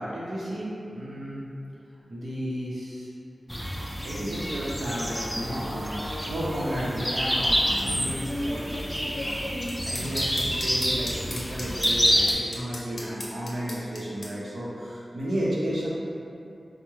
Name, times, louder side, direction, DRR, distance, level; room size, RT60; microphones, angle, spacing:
voice 1, 0.0-1.5 2.1-3.1 4.0-6.0 6.3-9.4 9.8-15.9, equal, 85° right, -7 dB, 0.7 m, -33 dB
sound 1, 3.5-12.3, equal, ahead, 0.4 m, -28 dB
sound 2, 7.4-14.3, left 1 dB, 80° left, 0.6 m, -36 dB
3.5 x 2.0 x 3.0 m, 2.7 s
wide cardioid pair, 60°, 0 cm